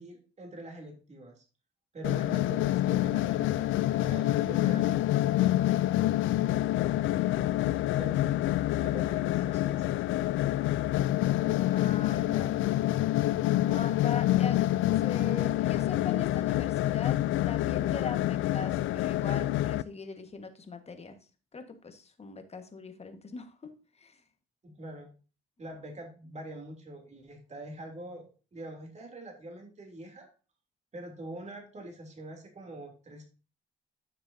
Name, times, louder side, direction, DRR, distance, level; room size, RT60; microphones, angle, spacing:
voice 1, 0.0-1.4 1.9-5.0 7.8-8.4 8.8-10.0 24.6-25.1 25.6-30.3 30.9-33.2, right 1 dB, 35° right, 2 dB, 3.1 m, -44 dB
sound 1, 2.0-19.8, left 14 dB, 85° left, 0.4 m, -27 dB
voice 2, 7.1-7.6 11.7-12.6 13.6-14.6 15.0-21.2 21.5-24.2, left 4 dB, 30° left, 7 dB, 1.6 m, -41 dB
10.0 x 6.8 x 2.8 m, 0.34 s
cardioid pair, 90°, 20 cm